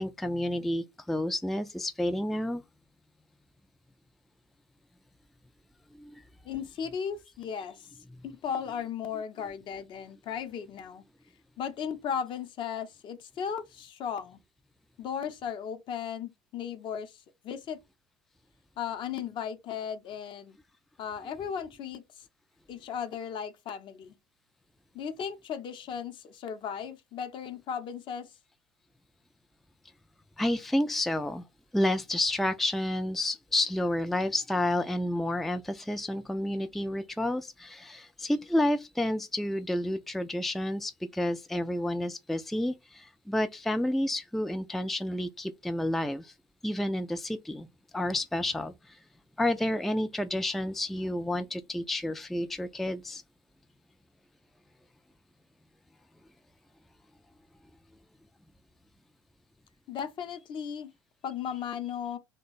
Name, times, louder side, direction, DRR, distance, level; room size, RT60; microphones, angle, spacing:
voice 1, 0.0-2.6 6.0-6.2 30.4-31.5 31.7-46.3 46.6-47.7 47.9-49.0 49.4-53.2, left 1 dB, ahead, 0.3 m, -30 dB
voice 2, 6.4-7.9 8.2-11.0 11.6-14.4 15.0-17.8 18.8-20.6 21.0-22.0 22.7-24.1 24.9-28.3 59.9-60.9 61.2-62.2, left 7 dB, 50° left, 0.7 m, -36 dB
3.0 x 2.2 x 4.0 m
hypercardioid pair, 70°, 11 cm